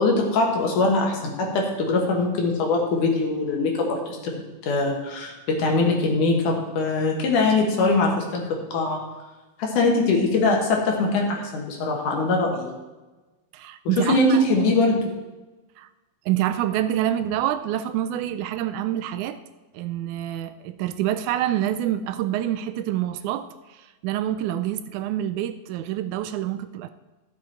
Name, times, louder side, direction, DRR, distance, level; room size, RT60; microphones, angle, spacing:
voice 1, 0.0-4.3 4.6-8.4 8.7-9.0 9.6-12.7 14.1-15.0, left 3 dB, 80° left, 1 dB, 3.2 m, -22 dB
voice 2, 13.5-14.4 15.8-15.9 16.3-19.4 19.7-26.9, right 12 dB, 80° right, 11 dB, 1.9 m, -27 dB
13.0 x 7.2 x 4.5 m, 1.2 s
omnidirectional pair, 3.6 m